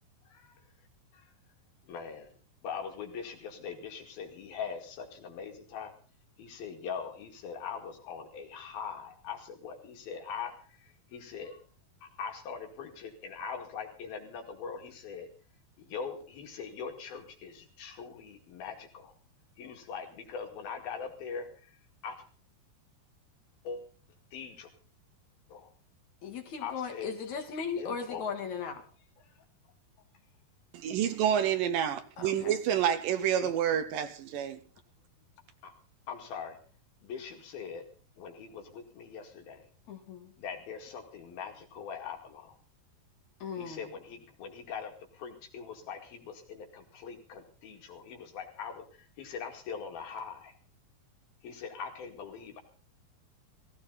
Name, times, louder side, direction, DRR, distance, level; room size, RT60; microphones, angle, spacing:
voice 1, 0.3-0.6 1.1-1.3 1.8-2.3 2.6-5.9 6.4-11.6 12.0-15.3 15.8-19.1 19.6-21.7 22.0-22.2 23.6-23.8 24.3-24.7 25.5-25.7 26.6-27.2 27.8-28.3 29.2-29.4 33.4-33.5 35.6-35.7 36.1-36.6 37.0-37.8 38.2-39.7 40.4-42.6 43.5-50.5 51.4-52.6, left 6 dB, 75° left, 4.1 m, -42 dB
voice 2, 26.2-28.8 32.2-32.5 39.9-40.3 43.4-43.8, left 6 dB, 55° left, 2.8 m, -37 dB
voice 3, 30.8-34.6, right 9 dB, 75° right, 2.5 m, -28 dB
17.0 x 16.5 x 4.1 m
omnidirectional pair, 4.4 m